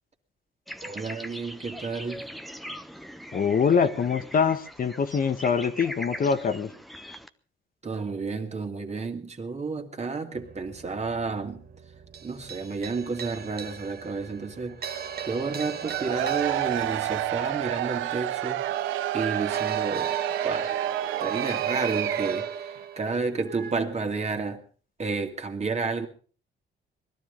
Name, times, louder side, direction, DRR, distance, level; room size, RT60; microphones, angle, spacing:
sound 1, 0.7-7.3, equal, ahead, 1.1 m, -41 dB
voice 1, 0.8-2.3 7.8-11.6 12.2-14.8 15.3-18.6 19.1-20.1 20.4-20.8 21.2-24.6 25.0-26.1, right 4 dB, 35° right, 2.6 m, -31 dB
voice 2, 3.3-6.7, left 6 dB, 45° left, 1.3 m, -24 dB
sound 2, 10.4-23.7, right 7 dB, 50° right, 1.5 m, -35 dB
Cheering / Crowd, 15.8-22.5, right 14 dB, 85° right, 0.7 m, -30 dB
20.5 x 12.5 x 5.4 m
cardioid pair, 90°, 20 cm